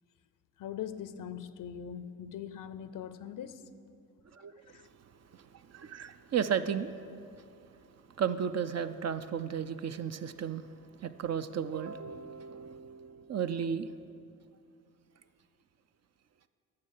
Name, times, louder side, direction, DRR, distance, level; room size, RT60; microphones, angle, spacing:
voice 1, 0.6-3.6 4.7-4.8, left 9 dB, 60° left, 13 dB, 0.6 m, -41 dB
voice 2, 5.3-6.9 7.3-7.4 8.2-10.7 11.0-13.9, right 7 dB, 45° right, 10 dB, 0.5 m, -34 dB
9.6 x 6.5 x 6.6 m, 2.4 s
supercardioid pair, 50°, 37 cm